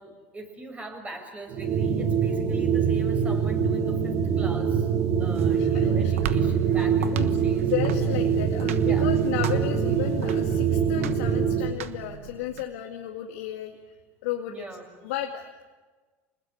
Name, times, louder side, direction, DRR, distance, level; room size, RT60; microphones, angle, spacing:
voice 1, 0.0-4.9 5.2-7.7 8.8-9.1 14.5-14.8, right 2 dB, 20° right, 5 dB, 6.4 m, -41 dB
sound 1, 1.5-11.8, right 7 dB, 55° right, 2.9 m, -24 dB
sound 2, 5.2-12.6, right 8 dB, 90° right, 1.3 m, -38 dB
voice 2, 5.6-6.3 7.0-7.3 7.7-14.0 14.2-14.5 15.0-15.5, left 12 dB, 80° left, 1 dB, 2.1 m, -33 dB
26.5 x 20.5 x 9.5 m, 1.3 s
supercardioid pair, 100°, 7 cm